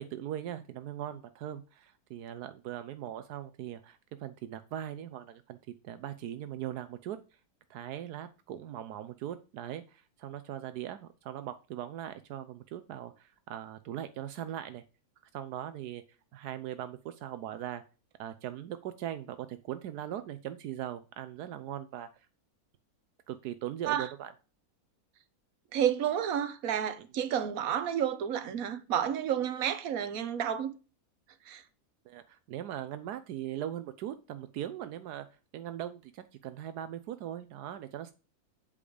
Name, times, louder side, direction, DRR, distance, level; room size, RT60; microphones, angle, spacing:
voice 1, 0.0-5.6 5.8-7.2 7.7-14.8 15.3-16.0 16.3-17.8 18.2-22.1 23.3-24.3 32.1-35.3 35.5-38.1, right 11 dB, 85° right, 1.2 m, -40 dB
voice 2, 25.7-30.7 31.5-31.6, right 9 dB, 65° right, 1.3 m, -30 dB
8.8 x 5.1 x 5.0 m
omnidirectional pair, 1.7 m